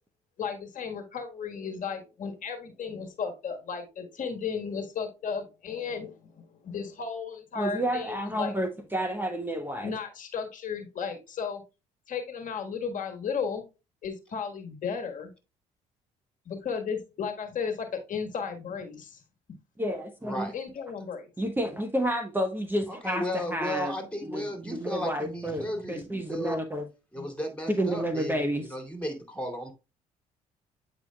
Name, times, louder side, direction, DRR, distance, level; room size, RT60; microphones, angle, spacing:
voice 1, 0.4-8.5 9.8-11.6 12.1-13.6 14.0-15.3 16.4-19.2 20.5-21.3 27.2-27.3, left 6 dB, 55° left, 1.5 m, -34 dB
voice 2, 7.6-9.9 19.8-20.5 21.4-23.9 24.2-26.9 27.7-28.8, equal, 15° right, 1.0 m, -30 dB
voice 3, 20.2-20.6 22.9-26.6 27.1-29.7, equal, 10° left, 2.6 m, -35 dB
8.4 x 4.8 x 2.3 m
supercardioid pair, 60°, 16 cm